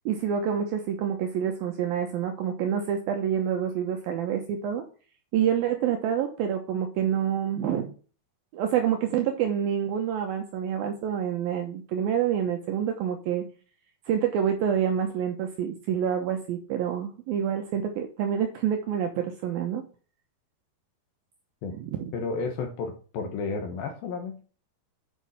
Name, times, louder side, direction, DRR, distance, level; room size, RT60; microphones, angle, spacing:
voice 1, 0.1-4.8 5.3-7.9 8.5-13.4 14.1-19.8 21.8-22.1, right 8 dB, 70° right, 4 dB, 2.6 m, -27 dB
voice 2, 22.1-24.4, left 4 dB, 70° left, 4 dB, 2.8 m, -32 dB
9.3 x 5.4 x 5.6 m, 0.37 s
omnidirectional pair, 4.7 m